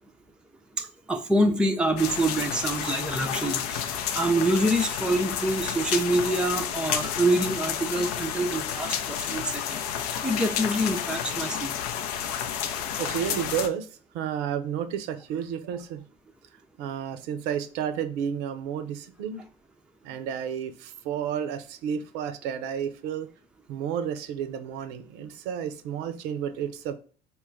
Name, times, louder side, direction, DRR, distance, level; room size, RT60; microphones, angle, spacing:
voice 1, 0.8-11.7, right 1 dB, 5° right, 4 dB, 0.5 m, -26 dB
sound 1, 2.0-13.7, left 9 dB, 65° left, 0.5 m, -31 dB
voice 2, 13.0-13.9 14.1-16.0 16.8-19.4 20.0-23.3 23.7-27.0, right 8 dB, 55° right, 11 dB, 0.5 m, -31 dB
4.4 x 2.3 x 3.2 m, 0.41 s
figure-of-eight pair, 55°, 21 cm